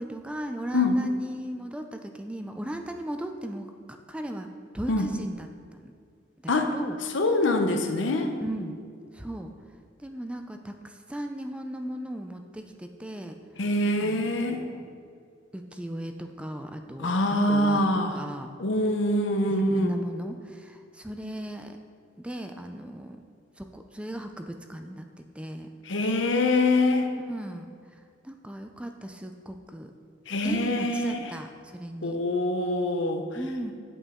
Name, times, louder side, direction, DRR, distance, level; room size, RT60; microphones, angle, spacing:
voice 1, 0.0-3.7 4.1-5.5 5.8-5.9 6.4-7.0 8.4-8.8 9.1-9.5 10.0-13.4 14.0-14.9 15.5-18.5 19.5-21.8 22.2-23.2 23.6-25.7 27.3-27.7 28.2-29.9 30.4-32.2 33.3-33.7, right 1 dB, 5° right, 5 dB, 0.4 m, -37 dB
voice 2, 7.0-8.3 13.6-14.6 17.0-18.2 18.6-19.9 25.9-27.1 30.3-31.3 32.0-33.2, left 2 dB, 75° left, 5 dB, 0.8 m, -24 dB
8.3 x 8.1 x 3.6 m, 2.2 s
head